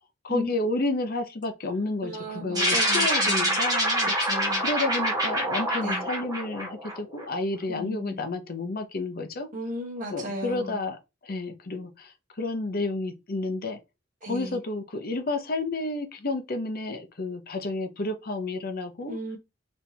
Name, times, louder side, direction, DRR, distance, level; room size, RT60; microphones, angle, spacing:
voice 1, 0.2-4.1 4.6-9.5 10.1-13.8 14.3-19.2, left 2 dB, 45° left, 0.7 m, -31 dB
voice 2, 2.0-3.6 4.2-4.6 5.8-6.1 7.7-8.2 9.5-10.8 14.2-14.6 19.1-19.4, left 1 dB, 40° right, 1.2 m, -35 dB
sound 1, 2.5-7.2, equal, 20° right, 1.9 m, -26 dB
4.3 x 3.4 x 2.8 m
head